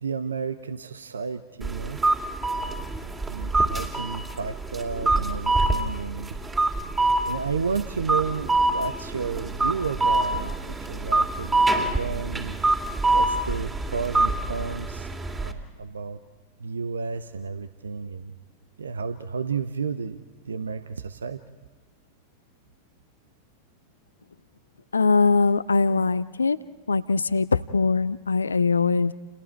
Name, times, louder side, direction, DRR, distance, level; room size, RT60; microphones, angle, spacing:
voice 1, 0.0-2.0 2.5-2.8 3.3-6.3 7.3-12.6 13.1-16.2 16.6-18.4 18.8-20.2 20.4-21.4, right 5 dB, 70° right, 12 dB, 0.8 m, -32 dB
sound 1, 1.6-15.5, right 2 dB, 15° right, 2.5 m, -25 dB
voice 2, 24.9-26.6 26.9-29.1, left 4 dB, 75° left, 16 dB, 0.6 m, -21 dB
30.0 x 29.5 x 4.6 m, 1.4 s
figure-of-eight pair, 90°, 0 cm